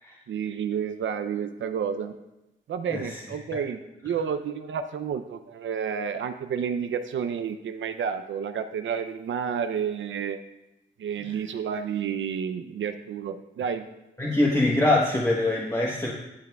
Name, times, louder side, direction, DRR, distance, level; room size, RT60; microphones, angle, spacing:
voice 1, 0.3-2.1 2.7-10.4 11.0-13.9, right 7 dB, 65° right, 9 dB, 0.5 m, -30 dB
voice 2, 14.2-16.1, left 2 dB, 15° left, -3 dB, 1.1 m, -23 dB
11.5 x 6.6 x 2.3 m, 0.95 s
supercardioid pair, 50°, 21 cm